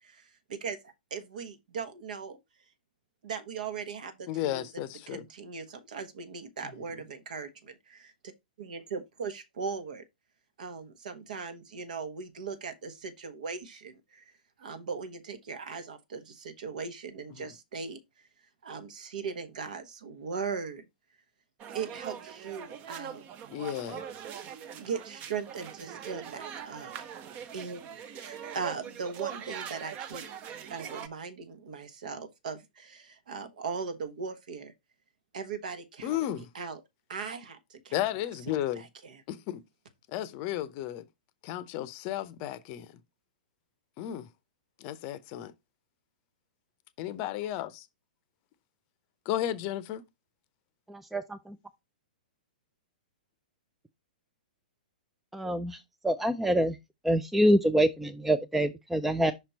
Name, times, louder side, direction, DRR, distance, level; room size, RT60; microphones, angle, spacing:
voice 1, 0.0-2.4 3.2-4.7 5.1-8.1 8.6-10.0 10.6-14.3 14.6-18.0 18.6-20.8 21.7-23.2 24.8-27.0 27.5-30.3 30.7-34.7 35.3-36.8 37.1-38.0 38.8-39.2, right 5 dB, 60° right, 1.2 m, -39 dB
voice 2, 4.3-5.2 17.4-17.5 23.5-24.0 36.0-36.5 37.9-38.8 39.3-39.6 40.1-41.0 41.5-42.8 44.0-44.3 44.8-45.5 47.0-47.9 49.3-50.0, left 12 dB, 35° left, 0.7 m, -33 dB
sound 1, 21.6-31.1, right 8 dB, 30° right, 0.7 m, -42 dB
voice 3, 50.9-51.6 55.3-55.8 56.0-56.8 57.0-59.3, right 1 dB, 5° right, 0.4 m, -26 dB
5.8 x 4.4 x 4.0 m
figure-of-eight pair, 110°, 5 cm